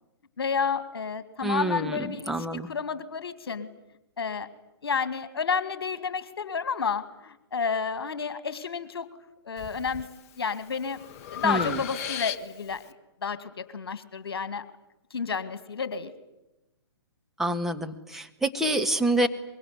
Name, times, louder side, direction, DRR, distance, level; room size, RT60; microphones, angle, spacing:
voice 1, 0.4-3.7 4.2-4.5 4.8-9.1 9.4-10.1 10.4-11.0 11.3-12.9 13.2-14.7 15.1-16.1, left 5 dB, 65° left, 13 dB, 2.3 m, -31 dB
voice 2, 1.4-2.0 2.3-2.7 11.4-11.8 17.4-19.3, right 1 dB, ahead, 4 dB, 1.5 m, -27 dB
Breathing, 9.6-10.1 10.5-12.8, left 10 dB, 35° left, 1.0 m, -34 dB
24.5 x 22.5 x 9.6 m, 0.94 s
figure-of-eight pair, 125°, 14 cm